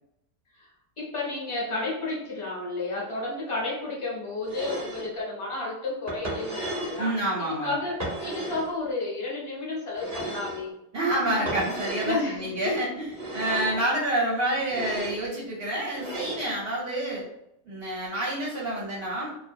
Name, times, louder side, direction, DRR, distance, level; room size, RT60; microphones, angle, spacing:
voice 1, 1.0-7.2 7.6-10.7 12.0-12.7 13.4-13.7, left 2 dB, 30° left, -6 dB, 0.7 m, -32 dB
sound 1, 4.4-5.1 6.1-7.0 8.0-8.7 9.9-10.6 11.5-12.2 13.1-13.8 14.6-15.2 15.9-16.5, right 1 dB, 15° right, 0.6 m, -34 dB
voice 2, 7.0-7.8 10.9-17.2 17.6-19.3, right 1 dB, 55° right, -5 dB, 0.7 m, -28 dB
2.4 x 2.1 x 2.6 m, 0.81 s
omnidirectional pair, 1.6 m